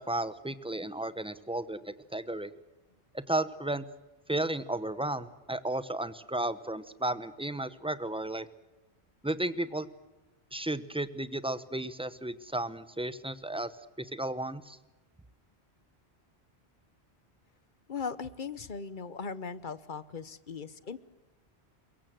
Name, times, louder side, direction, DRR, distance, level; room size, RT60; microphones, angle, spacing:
voice 1, 0.0-2.5 3.1-3.8 4.3-8.5 9.2-9.9 10.5-13.7 14.0-14.8, right 1 dB, 5° right, 13 dB, 0.8 m, -33 dB
voice 2, 17.9-21.0, left 5 dB, 50° left, 15 dB, 1.1 m, -38 dB
23.5 x 22.0 x 7.7 m, 1.1 s
omnidirectional pair, 1.1 m